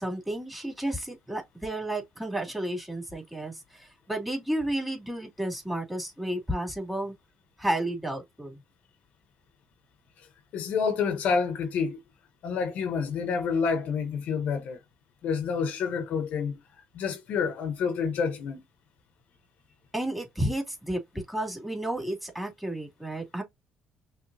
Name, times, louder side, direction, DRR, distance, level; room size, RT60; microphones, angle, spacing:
voice 1, 0.0-7.1 7.6-8.6 19.9-21.0 21.3-23.4, right 1 dB, 5° right, 2.7 m, -32 dB
voice 2, 10.5-12.0 12.4-14.8 15.2-16.6 16.9-18.6, left 5 dB, 70° left, 1.0 m, -28 dB
5.7 x 3.3 x 2.7 m
supercardioid pair, 75°, 3 cm